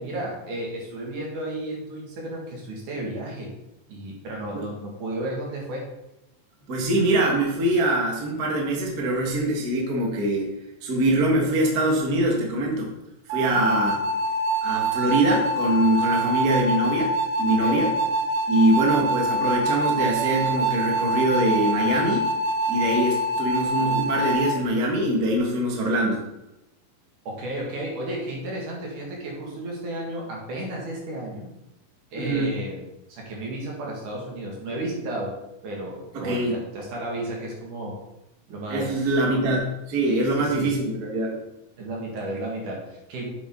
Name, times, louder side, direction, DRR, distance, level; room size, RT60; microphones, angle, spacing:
voice 1, 0.0-3.5 3.9-5.9 13.5-14.0 17.6-17.8 27.3-31.5 32.1-32.8 33.1-35.3 35.6-38.0 38.5-39.1 40.1-40.7 41.8-43.3, right 1 dB, 60° right, -2 dB, 3.5 m, -33 dB
voice 2, 6.7-10.5 10.8-12.9 13.3-14.0 14.6-17.1 17.4-17.9 18.5-22.3 22.7-26.2 32.2-32.6 36.1-36.5 38.7-41.4, right 1 dB, 35° right, -1 dB, 1.6 m, -23 dB
sound 1, 13.3-24.5, right 1 dB, 85° right, 2.6 m, -25 dB
9.7 x 7.9 x 3.9 m, 0.91 s
omnidirectional pair, 4.1 m